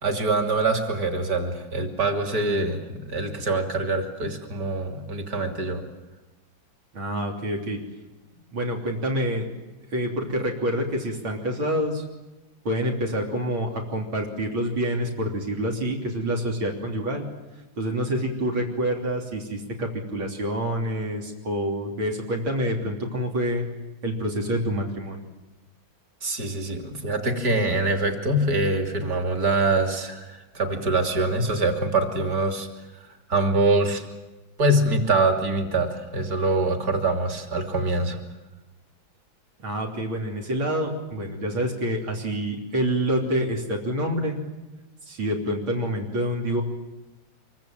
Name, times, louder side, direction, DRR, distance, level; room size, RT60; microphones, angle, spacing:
voice 1, 0.0-5.8 26.2-32.7 33.3-34.0 34.6-38.2, right 2 dB, 45° right, 5 dB, 3.5 m, -24 dB
voice 2, 6.9-7.8 8.5-9.5 9.9-12.0 12.7-17.3 17.8-23.6 24.0-25.2 39.6-44.4 45.1-46.6, equal, 85° right, 0 dB, 4.0 m, -27 dB
26.0 x 23.5 x 9.0 m, 1.0 s
omnidirectional pair, 2.2 m